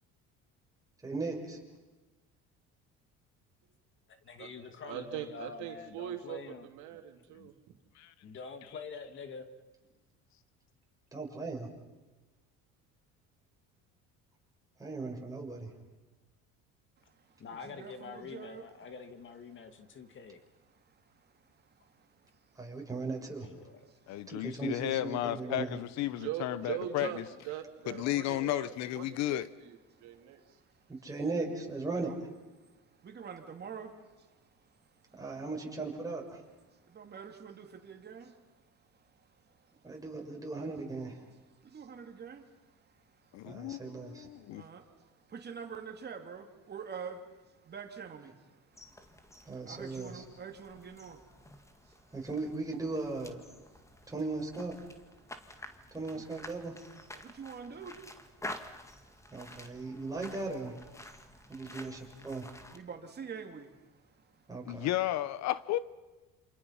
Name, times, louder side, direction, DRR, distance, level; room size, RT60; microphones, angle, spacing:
voice 1, 1.0-1.6 11.1-11.7 14.8-15.7 22.6-23.5 24.3-25.8 30.9-32.1 35.2-36.4 39.8-41.2 43.4-44.3 49.4-50.2 52.1-53.4 54.1-54.7 55.9-56.7 59.3-60.8 61.5-62.5 64.5-64.9, right 3 dB, 10° right, 6.5 m, -37 dB
voice 2, 4.2-6.7 7.3-7.5 8.2-9.5 17.4-20.4 23.4-23.8, left 5 dB, 40° left, 2.2 m, -46 dB
voice 3, 4.8-7.5 26.1-30.4, right 11 dB, 75° right, 3.1 m, -41 dB
voice 4, 17.6-18.6 21.5-21.6 21.8-21.9 22.2-22.3 23.9-24.2 26.6-27.2 30.4-30.5 31.9-32.2 33.0-34.3 36.9-38.4 41.6-42.5 43.3-43.4 44.5-47.3 47.6-48.6 49.0-49.1 49.6-51.3 51.8-51.9 57.1-58.1 61.4-61.7 62.7-63.8, right 6 dB, 35° right, 3.1 m, -46 dB
voice 5, 24.1-27.2 27.9-29.5 43.3-44.6 64.7-65.8, left 14 dB, 65° left, 1.0 m, -33 dB
sound 1, 48.7-62.8, left 1 dB, 10° left, 2.0 m, -50 dB
28.0 x 27.0 x 5.8 m
cardioid pair, 110°, 29 cm